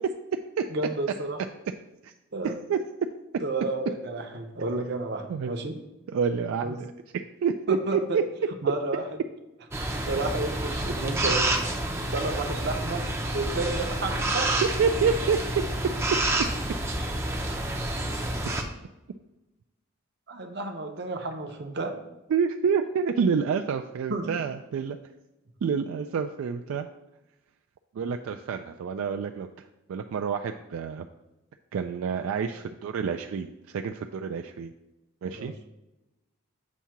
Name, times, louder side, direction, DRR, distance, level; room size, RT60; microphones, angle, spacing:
voice 1, 0.7-1.4 2.3-2.6 3.4-5.8 6.6-6.8 7.7-8.2 8.6-9.0 9.9-11.7 12.1-13.1 13.3-14.5 20.3-22.0 24.1-24.2 35.3-35.5, right 2 dB, 50° right, 5 dB, 0.7 m, -31 dB
voice 2, 2.4-2.8 5.3-5.5 6.1-8.2 14.8-15.4 22.3-25.0 25.6-26.9 27.9-31.0 31.7-34.7 35.2-35.5, right 6 dB, 75° right, 5 dB, 0.3 m, -28 dB
sound 1, 9.7-18.6, right 1 dB, 10° right, 0.5 m, -29 dB
7.1 x 2.8 x 5.7 m, 0.98 s
head